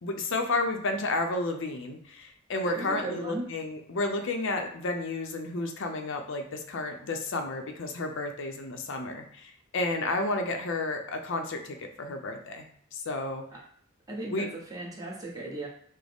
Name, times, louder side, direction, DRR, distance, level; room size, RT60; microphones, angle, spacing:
voice 1, 0.0-12.7 12.9-13.4 14.3-14.5, left 2 dB, 65° left, 5 dB, 0.6 m, -31 dB
voice 2, 2.6-3.5 13.5-13.6 14.1-15.7, right 2 dB, 15° right, -3 dB, 1.0 m, -36 dB
6.1 x 2.1 x 3.5 m, 0.65 s
head